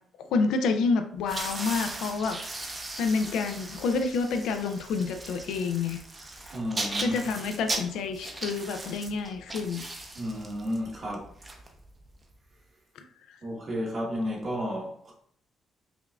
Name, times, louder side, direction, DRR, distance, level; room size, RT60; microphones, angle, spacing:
voice 1, 0.3-2.4 3.0-6.0 7.0-9.8, left 4 dB, 85° left, 0.4 m, -28 dB
sound 1, 1.2-12.2, right 2 dB, 30° right, 0.6 m, -38 dB
voice 2, 6.5-7.2 10.1-11.3 13.4-15.1, equal, 45° right, 1.1 m, -32 dB
4.9 x 2.4 x 2.3 m
cardioid pair, 90°, 0 cm